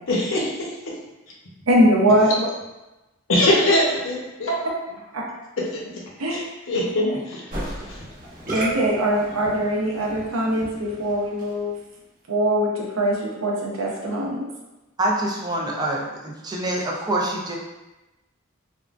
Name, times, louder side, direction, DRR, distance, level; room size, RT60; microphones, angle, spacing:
voice 1, 0.1-0.5 3.3-4.5 5.7-5.9 6.3-6.4 6.7-7.4, left 1 dB, 70° left, -3 dB, 0.8 m, -21 dB
voice 2, 1.7-2.5 6.2-6.4 7.1-7.2 8.5-11.7 12.3-14.4, equal, 80° right, -3 dB, 0.7 m, -21 dB
Musical instrument, 7.5-11.8, right 1 dB, 45° right, 0.8 m, -35 dB
voice 3, 15.0-17.6, right 1 dB, 20° right, -2 dB, 0.4 m, -25 dB
3.5 x 2.2 x 2.4 m, 1.0 s
head